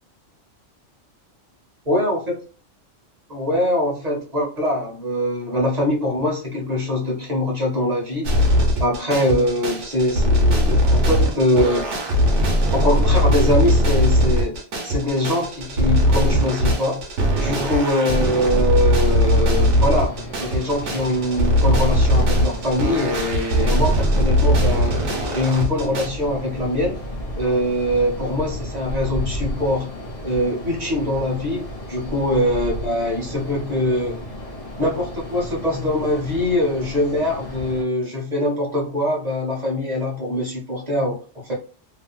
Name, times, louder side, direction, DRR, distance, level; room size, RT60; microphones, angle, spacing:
voice 1, 1.9-2.4 3.3-8.3 8.8-11.9 12.7-17.0 17.3-25.0 25.3-27.0 27.3-29.9 30.2-34.1 34.8-41.5, left 1 dB, 35° right, -2 dB, 1.0 m, -23 dB
sound 1, 8.2-26.1, equal, 65° right, 1.1 m, -19 dB
sound 2, 19.7-37.8, equal, 35° left, 0.8 m, -33 dB
2.9 x 2.7 x 2.2 m, 0.38 s
omnidirectional pair, 1.3 m